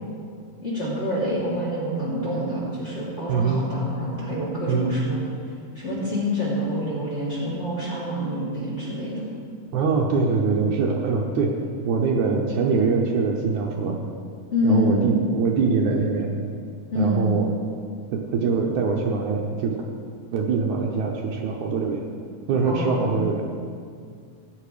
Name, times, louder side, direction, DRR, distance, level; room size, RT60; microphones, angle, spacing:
voice 1, 0.6-5.2 5.7-9.3 14.5-15.0 16.9-17.3 22.6-23.3, equal, 20° left, -7 dB, 3.0 m, -26 dB
voice 2, 3.3-3.6 4.7-5.0 9.7-11.5 11.9-14.0 14.6-16.3 17.0-17.5 18.1-19.7 20.3-22.0 22.5-23.4, right 4 dB, 70° right, 0 dB, 2.2 m, -23 dB
15.5 x 9.2 x 5.0 m, 2.2 s
omnidirectional pair, 3.9 m